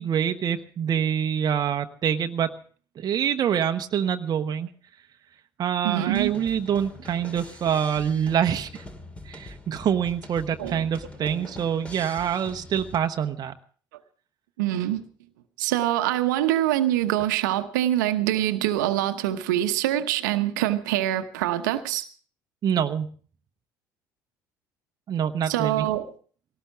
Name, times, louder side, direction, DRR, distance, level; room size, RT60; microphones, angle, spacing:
voice 1, 0.0-2.5 3.0-4.7 5.6-8.8 9.3-13.5 22.6-23.1 25.1-25.9, right 8 dB, 40° right, 7 dB, 1.0 m, -25 dB
voice 2, 5.8-6.3 10.6-10.8 14.6-15.1 15.6-22.0 25.5-26.1, right 13 dB, 70° right, 9 dB, 1.0 m, -24 dB
sound 1, 6.1-13.0, left 1 dB, 10° left, 2.3 m, -43 dB
20.0 x 18.0 x 3.5 m, 0.44 s
figure-of-eight pair, 60°, 10 cm